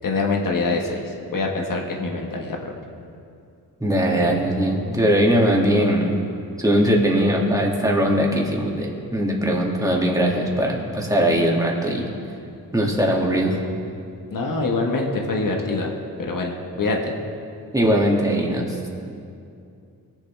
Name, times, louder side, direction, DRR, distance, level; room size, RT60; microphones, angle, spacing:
voice 1, 0.0-2.6 14.3-15.9 16.2-17.1, left 3 dB, 60° left, 1 dB, 1.6 m, -24 dB
voice 2, 3.8-6.2 6.6-12.1 12.7-13.6 17.7-18.9, equal, 10° right, -1 dB, 2.3 m, -20 dB
18.5 x 7.3 x 3.5 m, 2.5 s
cardioid pair, 65°, 37 cm